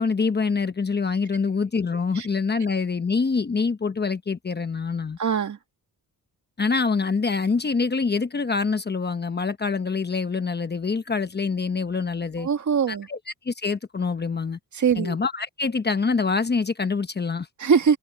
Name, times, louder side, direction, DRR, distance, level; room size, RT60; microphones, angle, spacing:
voice 1, 0.0-5.2 6.6-12.5 12.9-13.2 13.4-14.6 15.0-17.5, left 4 dB, 25° left, 1.0 m, -25 dB
voice 2, 5.2-5.6 12.4-13.1 14.7-15.2 17.6-18.0, right 6 dB, 50° right, 2.1 m, -22 dB
cardioid pair, 115°, 39 cm